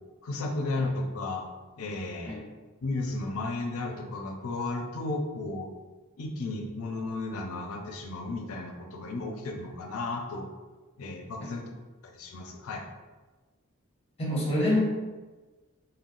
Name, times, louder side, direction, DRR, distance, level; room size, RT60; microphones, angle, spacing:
voice 1, 0.2-1.5 1.8-2.4 2.8-5.7 6.2-10.5 11.0-11.6 12.0-12.8, left 2 dB, 80° left, 2 dB, 0.5 m, -34 dB
voice 2, 14.2-14.8, left 1 dB, 30° left, -4 dB, 0.8 m, -27 dB
3.7 x 2.1 x 2.5 m, 1.3 s
head